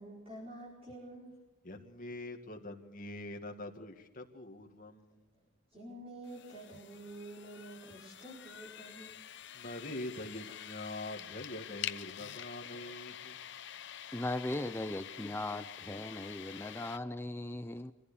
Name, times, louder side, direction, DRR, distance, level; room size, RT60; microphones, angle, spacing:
voice 1, 0.0-1.4 5.7-9.2, right 1 dB, 30° right, -5 dB, 4.8 m, -48 dB
voice 2, 1.6-5.2 9.5-13.4, left 1 dB, 45° left, 2 dB, 2.2 m, -44 dB
sound 1, 6.2-17.0, left 10 dB, 60° left, 0.8 m, -47 dB
voice 3, 14.1-17.9, left 1 dB, 10° left, 10 dB, 0.6 m, -38 dB
24.5 x 15.0 x 7.0 m, 1.2 s
head